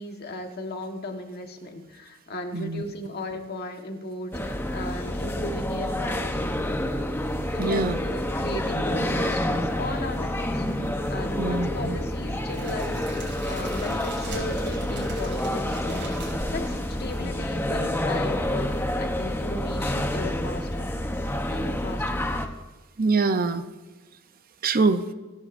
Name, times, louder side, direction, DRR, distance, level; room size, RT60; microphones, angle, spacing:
voice 1, 0.0-6.8 7.5-16.1 16.5-20.9 21.5-22.3, left 1 dB, 50° left, 4 dB, 1.4 m, -36 dB
voice 2, 2.5-2.8 7.6-8.0 11.4-12.0 23.0-23.6 24.6-25.0, right 3 dB, 45° right, 10 dB, 0.6 m, -24 dB
sound 1, 4.3-22.5, left 1 dB, 10° left, 0.8 m, -28 dB
Crackle, 12.5-17.5, right 2 dB, 60° right, 5.5 m, -41 dB
29.0 x 11.5 x 2.6 m, 1.2 s
head